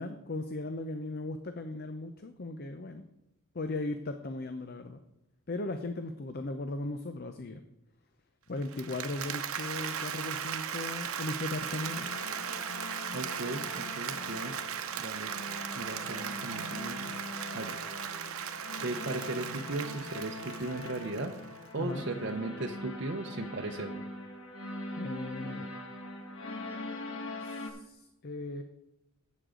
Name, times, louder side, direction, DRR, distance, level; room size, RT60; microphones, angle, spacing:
voice 1, 0.0-3.1 3.5-5.0 5.5-7.6 8.5-12.1 21.8-22.1 25.0-25.7 27.4-28.6, left 2 dB, 50° left, 8 dB, 0.6 m, -37 dB
Applause, 8.6-21.6, right 8 dB, 90° right, 0.8 m, -38 dB
sound 1, 11.6-27.7, left 1 dB, 70° left, 1.6 m, -42 dB
voice 2, 13.1-14.5 15.0-15.3 15.8-17.1 17.5-17.8 18.8-21.3 21.7-24.0, right 2 dB, 55° right, 2 dB, 0.7 m, -37 dB
11.5 x 8.4 x 3.8 m, 0.91 s
head